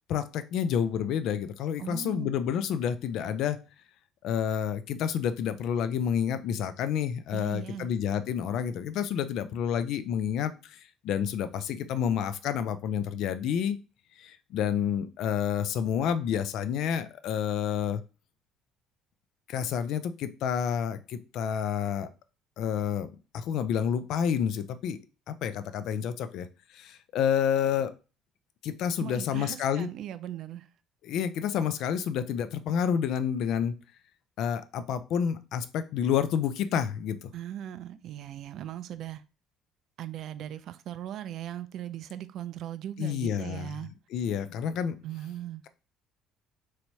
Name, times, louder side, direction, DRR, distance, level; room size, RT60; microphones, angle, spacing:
voice 1, 0.1-3.6 4.2-13.8 14.2-18.0 19.5-22.1 22.6-25.0 25.3-26.5 26.7-27.9 28.6-29.9 31.0-33.7 34.4-37.3 43.0-43.7 44.1-44.9, left 8 dB, 60° left, 0.3 m, -29 dB
voice 2, 1.8-2.3 7.3-7.9 29.0-30.7 37.3-39.2 40.0-43.9 45.0-45.6, right 11 dB, 55° right, 0.3 m, -38 dB
3.1 x 2.9 x 2.8 m
hypercardioid pair, 55°, 0 cm